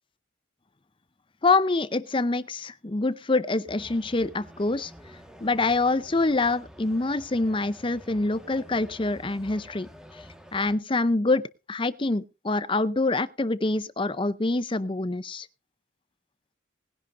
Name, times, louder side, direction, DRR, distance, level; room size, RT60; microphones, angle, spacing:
voice 1, 1.4-4.9 5.4-9.9 10.5-11.4 11.7-15.5, left 3 dB, 25° left, 0.6 m, -25 dB
sound 1, 3.7-10.8, equal, 5° right, 1.5 m, -49 dB
20.0 x 10.5 x 2.6 m
head